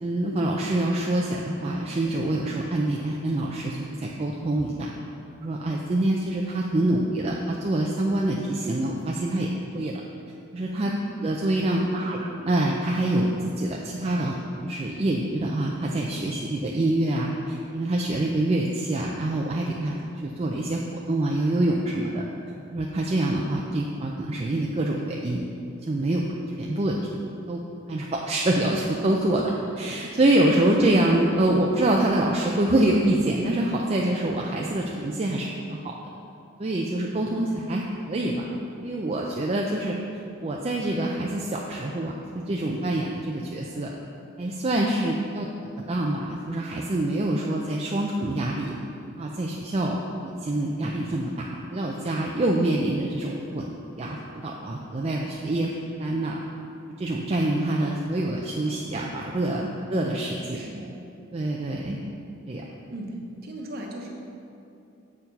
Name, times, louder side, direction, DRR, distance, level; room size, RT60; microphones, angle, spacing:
voice 1, 0.0-4.9 5.4-9.5 9.7-10.0 10.5-10.9 11.2-19.9 20.2-20.8 21.1-22.2 22.7-25.4 25.8-26.3 26.6-27.0 27.5-27.6 27.9-35.9 36.6-40.0 40.4-43.9 44.4-45.5 45.9-48.7 49.2-53.6 53.9-54.2 54.4-55.7 56.0-56.4 57.0-59.6 59.9-60.7 61.3-62.0 62.5-62.6, right 1 dB, 30° right, -1 dB, 0.4 m, -26 dB
voice 2, 11.8-12.2 59.6-59.8 60.5-60.9 62.9-64.1, right 1 dB, 45° right, -1 dB, 1.0 m, -38 dB
7.2 x 4.6 x 5.2 m, 2.7 s
head